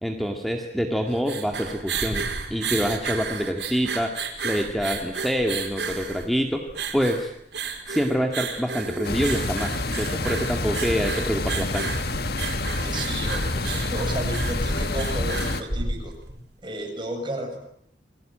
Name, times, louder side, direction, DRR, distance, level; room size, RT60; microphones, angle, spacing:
voice 1, 0.0-4.1 4.4-6.6 6.9-7.3 7.9-11.9, equal, ahead, 3 dB, 2.2 m, -26 dB
sound 1, 1.0-16.4, right 5 dB, 85° right, 5.4 m, -33 dB
sound 2, 9.0-15.6, left 2 dB, 60° left, 1.6 m, -27 dB
voice 2, 12.7-16.2 16.6-17.6, right 1 dB, 25° right, 3 dB, 7.2 m, -33 dB
29.0 x 22.5 x 9.0 m, 0.72 s
head